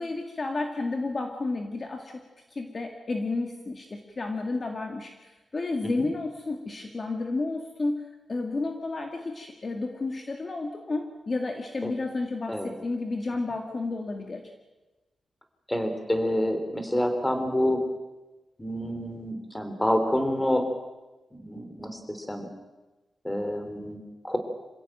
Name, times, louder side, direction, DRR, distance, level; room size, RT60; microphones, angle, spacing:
voice 1, 0.0-14.4, left 3 dB, 35° left, 3 dB, 2.0 m, -32 dB
voice 2, 15.7-17.8 18.6-20.7 21.3-22.5 23.2-24.4, left 1 dB, 10° left, 6 dB, 3.4 m, -28 dB
27.0 x 16.5 x 9.0 m, 1.1 s
wide cardioid pair, 145°, 0 cm